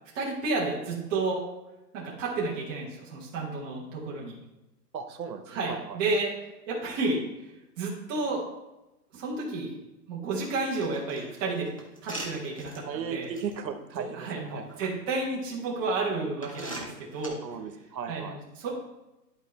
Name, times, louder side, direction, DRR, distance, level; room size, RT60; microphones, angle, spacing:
voice 1, 0.1-1.4 1.9-4.3 5.5-6.3 6.7-7.2 7.8-8.4 9.1-9.8 10.1-11.7 12.0-13.3 13.9-17.4 18.1-18.7, right 3 dB, 15° right, -5 dB, 1.1 m, -31 dB
voice 2, 4.9-6.0 12.8-14.8 17.4-18.4, right 6 dB, 90° right, 7 dB, 1.2 m, -36 dB
sound 1, 10.4-12.8 13.3-13.5 14.4-14.9 15.6-15.7 16.4-17.3, right 1 dB, 20° left, 0.5 m, -41 dB
11.0 x 3.9 x 4.2 m, 0.97 s
hypercardioid pair, 170°, 50 cm